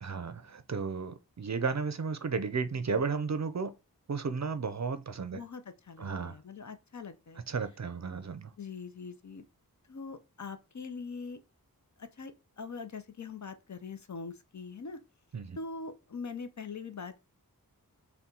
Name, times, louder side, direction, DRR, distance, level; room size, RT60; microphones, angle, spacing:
voice 1, 0.0-3.7 4.1-5.4 6.0-6.4 7.5-8.5 15.3-15.6, right 5 dB, 50° right, 0.5 m, -33 dB
voice 2, 5.3-7.4 8.6-9.4 9.9-11.4 12.0-15.0 15.6-17.2, left 4 dB, 50° left, 0.5 m, -42 dB
4.2 x 2.2 x 3.7 m
wide cardioid pair, 50°, 37 cm